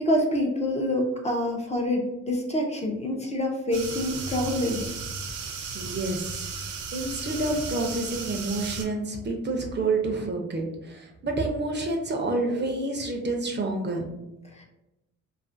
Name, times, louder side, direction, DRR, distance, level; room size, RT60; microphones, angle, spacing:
voice 1, 0.0-5.0 14.5-14.6, left 1 dB, 25° left, 1 dB, 0.5 m, -26 dB
sound 1, 3.7-8.8, right 5 dB, 90° right, 0.5 m, -35 dB
voice 2, 5.4-6.5 6.9-14.0, right 2 dB, 35° right, 2 dB, 0.5 m, -29 dB
2.4 x 2.4 x 2.5 m, 0.92 s
cardioid pair, 70°, 29 cm